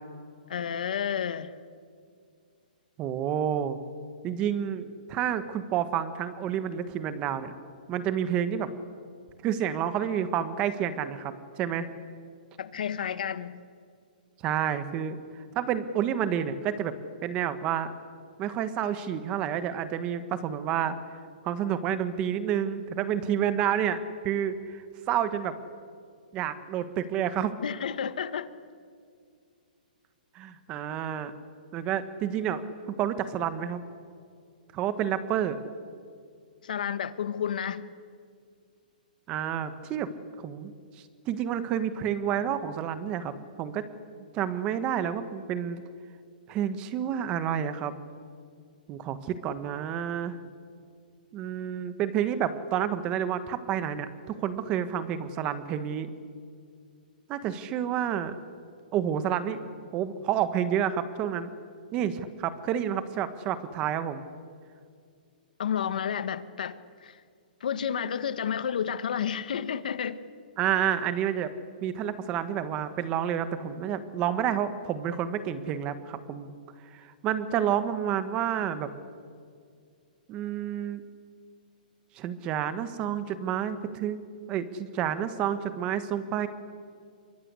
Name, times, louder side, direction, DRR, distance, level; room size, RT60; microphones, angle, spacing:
voice 1, 0.5-1.5 12.6-13.6 27.6-28.5 36.6-37.9 65.6-67.2 67.6-70.2, left 8 dB, 60° left, 12 dB, 1.7 m, -31 dB
voice 2, 3.0-3.8 4.2-7.5 7.9-8.7 9.4-11.9 14.4-15.2 15.5-16.9 17.2-17.9 18.4-21.0 21.4-24.0 24.2-25.5 26.3-27.5 30.3-31.3 31.7-32.6 32.9-33.8 34.7-35.6 39.3-40.1 40.4-40.7 41.3-43.9 44.3-45.8 46.5-47.9 48.9-50.4 51.3-56.1 57.3-58.4 58.9-59.6 59.9-61.5 61.9-64.2 70.6-71.5 71.8-76.5 76.9-78.9 80.3-81.0 82.2-86.5, right 9 dB, 20° right, 12 dB, 1.4 m, -29 dB
27.0 x 24.0 x 8.3 m, 2.2 s
hypercardioid pair, 170°, 5 cm